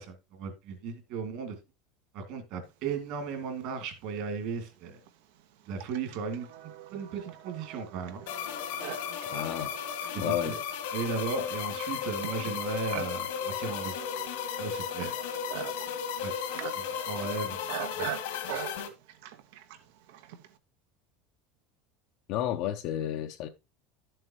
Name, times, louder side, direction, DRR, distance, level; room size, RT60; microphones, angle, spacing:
voice 1, 0.0-1.5 2.1-5.0 5.7-8.2 10.1-10.6 10.9-14.0 14.6-15.2 16.2-16.3 16.8-17.6 17.9-18.1, right 5 dB, 50° right, 2.6 m, -36 dB
Livestock farm animals working animals, 3.8-3.9 4.6-20.6, right 11 dB, 75° right, 1.2 m, -43 dB
sound 1, 8.3-18.9, left 8 dB, 90° left, 2.1 m, -35 dB
voice 2, 9.3-9.7 10.2-10.5 22.3-23.5, left 11 dB, 45° left, 0.6 m, -31 dB
11.5 x 7.6 x 3.1 m
cardioid pair, 175°, 0 cm